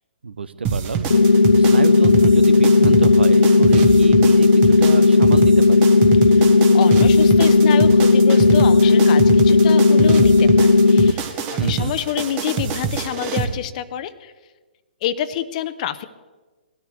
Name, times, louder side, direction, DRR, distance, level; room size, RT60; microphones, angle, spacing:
voice 1, 0.2-5.8 11.6-11.9, right 4 dB, 85° right, 14 dB, 0.8 m, -28 dB
sound 1, 0.6-13.4, right 5 dB, 30° right, 1.4 m, -26 dB
sound 2, 1.1-11.1, left 3 dB, 90° left, 0.5 m, -13 dB
voice 2, 6.7-14.3 15.0-16.1, left 11 dB, 45° left, 13 dB, 0.7 m, -28 dB
19.5 x 13.0 x 3.2 m, 1.3 s
hypercardioid pair, 135°, 6 cm